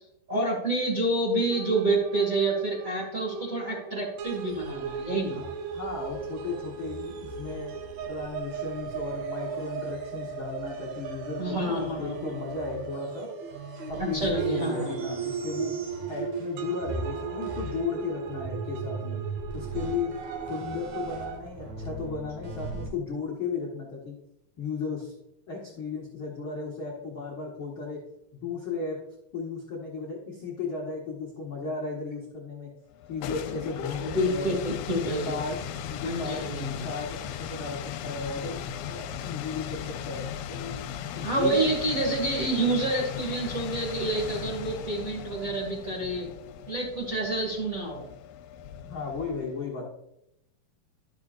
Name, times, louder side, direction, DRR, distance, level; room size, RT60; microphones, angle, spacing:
voice 1, 0.3-5.4 11.4-12.3 14.0-15.0 34.0-35.3 36.0-36.8 41.2-46.3 46.7-48.0, right 2 dB, 35° right, -4 dB, 1.5 m, -28 dB
sound 1, 1.5-21.4, right 7 dB, 85° right, 2.8 m, -37 dB
sound 2, 4.3-16.6 16.8-22.9, right 3 dB, 55° right, 2.4 m, -41 dB
voice 2, 5.7-7.7 8.1-13.3 13.9-15.8 16.1-19.2 19.5-20.1 20.5-24.1 24.6-25.1 25.5-28.0 28.3-29.0 29.3-32.7 33.1-34.6 35.2-35.6 35.9-36.4 36.8-38.6 38.9-40.9 41.1-41.7 48.8-49.8, left 4 dB, 65° left, -4 dB, 1.2 m, -35 dB
sound 3, 32.9-49.6, left 9 dB, 85° left, 2.5 m, -37 dB
12.0 x 6.5 x 2.5 m, 0.81 s
omnidirectional pair, 4.6 m